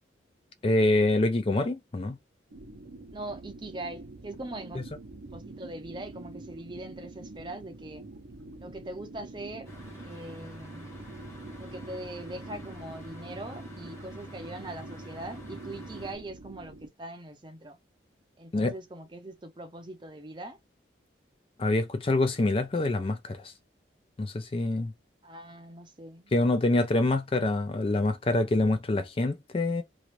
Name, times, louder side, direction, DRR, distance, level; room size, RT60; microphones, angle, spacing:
voice 1, 0.6-2.2 4.7-4.8 18.5-18.7 21.6-23.5 24.2-24.9 26.3-29.8, left 2 dB, 30° left, 0.4 m, -26 dB
sound 1, 2.5-16.9, right 2 dB, 75° right, 0.7 m, -46 dB
voice 2, 3.1-4.8 5.3-8.0 8.6-9.7 10.0-10.9 11.6-17.8 18.4-20.6 25.2-26.3, right 1 dB, 25° right, 0.6 m, -41 dB
sound 2, 9.6-16.1, equal, 15° left, 1.1 m, -46 dB
3.1 x 2.5 x 3.0 m
head